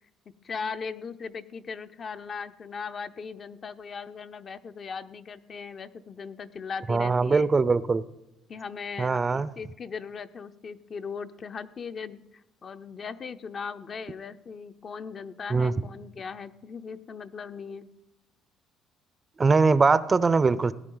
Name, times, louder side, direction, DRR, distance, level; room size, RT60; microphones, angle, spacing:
voice 1, 0.4-7.5 8.5-12.2 12.6-17.9, left 5 dB, 45° left, 10 dB, 0.6 m, -38 dB
voice 2, 6.9-8.0 9.0-9.5 15.5-15.7 19.4-20.7, right 4 dB, 30° right, 16 dB, 0.5 m, -22 dB
17.5 x 9.8 x 3.9 m, 0.91 s
cardioid pair, 95°, 0 cm